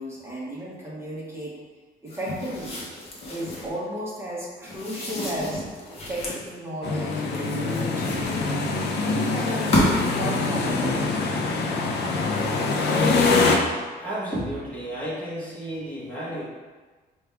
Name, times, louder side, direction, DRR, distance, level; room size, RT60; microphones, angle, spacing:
voice 1, 0.0-1.5 2.0-2.8 3.3-5.6 6.1-8.7 9.0-11.1, equal, 15° right, -6 dB, 0.9 m, -34 dB
sound 1, 2.1-3.8 4.6-6.5 7.1-8.7 9.4-10.2, left 1 dB, 35° left, 0.8 m, -30 dB
sound 2, 6.8-13.6, left 3 dB, 80° left, 0.5 m, -24 dB
voice 2, 13.9-16.4, right 1 dB, 10° left, -7 dB, 1.0 m, -32 dB
4.8 x 2.3 x 3.3 m, 1.4 s
cardioid pair, 170°, 17 cm